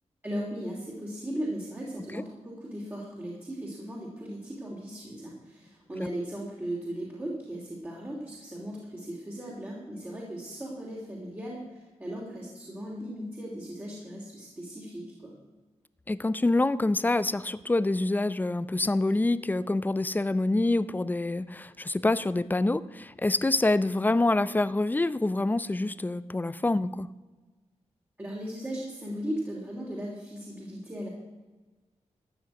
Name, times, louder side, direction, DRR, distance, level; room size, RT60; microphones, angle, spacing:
voice 1, 0.2-15.3 28.2-31.1, right 1 dB, 20° right, -4 dB, 2.9 m, -37 dB
voice 2, 16.1-27.1, left 2 dB, 15° left, 16 dB, 0.5 m, -26 dB
14.0 x 6.3 x 9.4 m, 1.2 s
wide cardioid pair, 105°, 12 cm